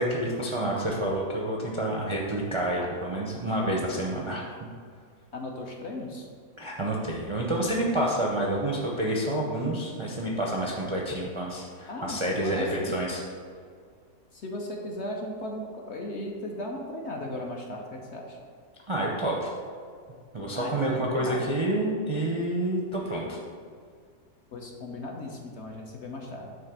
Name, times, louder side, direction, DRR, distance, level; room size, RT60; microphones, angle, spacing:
voice 1, 0.0-4.4 6.6-13.2 18.9-19.5 20.3-23.4, right 1 dB, 35° right, -3 dB, 0.4 m, -28 dB
voice 2, 5.3-6.3 11.9-12.9 14.3-18.4 20.5-21.5 24.5-26.5, left 1 dB, 55° left, 0 dB, 0.9 m, -37 dB
7.4 x 3.2 x 6.0 m, 2.1 s
omnidirectional pair, 1.7 m